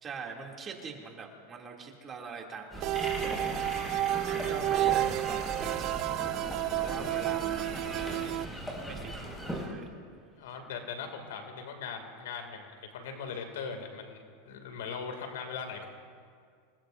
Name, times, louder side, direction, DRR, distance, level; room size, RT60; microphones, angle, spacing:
voice 1, 0.0-6.0 6.8-8.0 8.8-9.2 9.5-9.9, right 5 dB, 25° right, 0 dB, 2.6 m, -44 dB
sound 1, 2.7-9.7, right 1 dB, 5° left, 5.1 m, -38 dB
sound 2, 2.8-8.5, right 14 dB, 50° right, 0.3 m, -31 dB
voice 2, 10.4-15.9, left 6 dB, 85° left, 5 dB, 2.4 m, -40 dB
26.5 x 20.5 x 2.6 m, 2.1 s
supercardioid pair, 120°, 0 cm